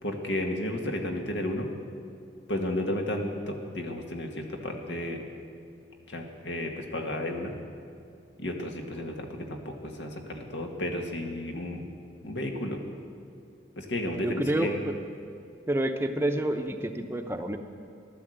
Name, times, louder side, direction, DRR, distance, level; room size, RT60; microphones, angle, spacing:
voice 1, 0.0-1.7 2.5-5.3 6.1-7.5 8.4-11.8 12.2-12.8 13.8-14.9, left 1 dB, 80° left, 2 dB, 1.8 m, -33 dB
voice 2, 14.2-14.9 15.7-17.6, right 1 dB, 15° right, 5 dB, 0.7 m, -28 dB
15.0 x 12.0 x 7.9 m, 2.5 s
head